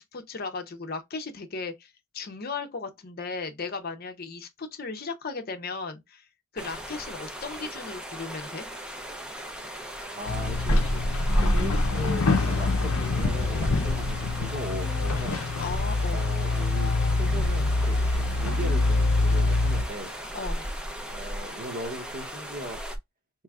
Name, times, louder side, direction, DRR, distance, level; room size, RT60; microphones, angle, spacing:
voice 1, 0.0-6.3 6.5-8.7 11.4-11.5 15.6-16.3 20.3-20.6, left 4 dB, 45° left, 0.7 m, -36 dB
sound 1, 6.6-23.0, equal, 5° right, 0.6 m, -33 dB
voice 2, 10.1-11.0 11.4-15.4 16.1-20.1 21.1-22.8, right 1 dB, 40° right, 1.0 m, -38 dB
sound 2, 10.3-19.8, left 3 dB, 85° left, 0.7 m, -25 dB
4.6 x 3.1 x 2.4 m
head